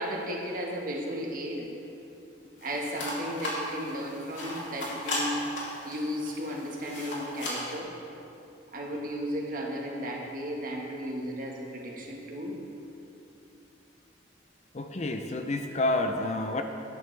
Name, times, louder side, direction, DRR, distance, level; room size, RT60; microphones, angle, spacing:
voice 1, 0.0-1.7 2.6-5.4 5.8-7.9 8.7-12.6, equal, 45° right, -1 dB, 1.4 m, -34 dB
sound 1, 2.6-7.8, left 1 dB, 75° left, 2.7 m, -36 dB
voice 2, 14.7-16.6, left 2 dB, 35° left, 5 dB, 0.5 m, -29 dB
12.0 x 10.5 x 3.3 m, 2.8 s
head